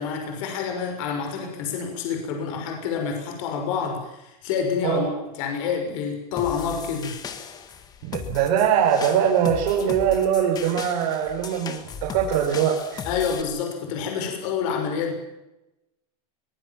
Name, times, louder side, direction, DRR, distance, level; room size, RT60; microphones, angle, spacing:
voice 1, 0.0-7.2 13.0-15.2, left 6 dB, 55° left, 3 dB, 6.2 m, -28 dB
sound 1, 6.4-13.4, left 6 dB, 20° left, 1.8 m, -37 dB
voice 2, 8.0-13.0, right 8 dB, 55° right, 0 dB, 4.7 m, -22 dB
23.5 x 20.0 x 7.4 m, 0.96 s
supercardioid pair, 175°, 20 cm